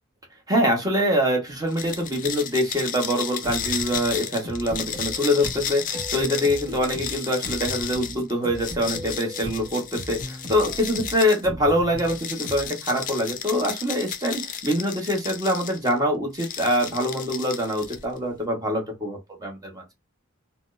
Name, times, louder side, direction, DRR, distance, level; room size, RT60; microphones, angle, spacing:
voice 1, 0.5-19.8, equal, 20° right, 0.8 m, -24 dB
sound 1, 1.7-11.4 12.0-15.9 16.3-18.2, left 8 dB, 40° left, 0.5 m, -33 dB
Little needle star dance, 3.3-12.7, equal, 45° right, 1.0 m, -38 dB
4.1 x 2.0 x 2.4 m
head